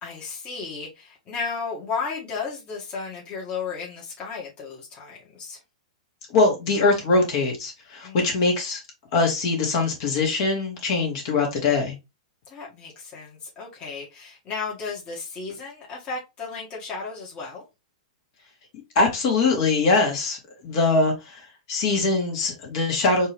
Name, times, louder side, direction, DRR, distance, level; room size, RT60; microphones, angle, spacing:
voice 1, 0.0-5.6 8.0-8.2 12.5-17.6, left 5 dB, 30° left, 1.8 m, -34 dB
voice 2, 6.3-8.8 9.1-11.9 19.0-21.4 21.7-23.3, left 3 dB, 50° left, 2.1 m, -22 dB
4.4 x 3.1 x 3.4 m
hypercardioid pair, 115°, 4 cm